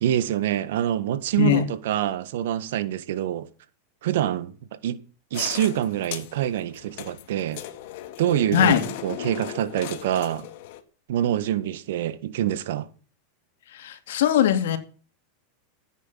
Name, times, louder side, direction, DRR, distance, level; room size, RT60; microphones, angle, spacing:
voice 1, 0.0-3.5 4.0-5.0 5.3-7.6 8.2-10.5 11.1-12.9, right 11 dB, 75° right, 1.6 m, -26 dB
sound 1, 5.3-10.8, left 13 dB, 65° left, 2.1 m, -37 dB
voice 2, 13.7-14.8, left 9 dB, 80° left, 2.6 m, -20 dB
14.5 x 9.4 x 7.4 m
supercardioid pair, 130°, 0 cm